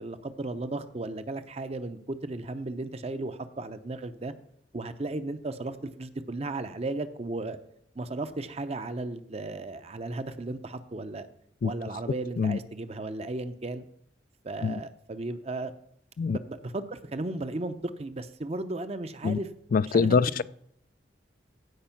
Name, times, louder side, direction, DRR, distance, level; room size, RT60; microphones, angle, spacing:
voice 1, 0.0-4.3 4.7-7.6 8.0-11.3 11.6-13.8 14.4-15.7 16.3-19.5 19.9-20.4, right 2 dB, 35° right, 10 dB, 0.6 m, -35 dB
voice 2, 19.7-20.4, left 5 dB, 50° left, 19 dB, 0.3 m, -24 dB
16.0 x 5.3 x 5.8 m, 0.71 s
head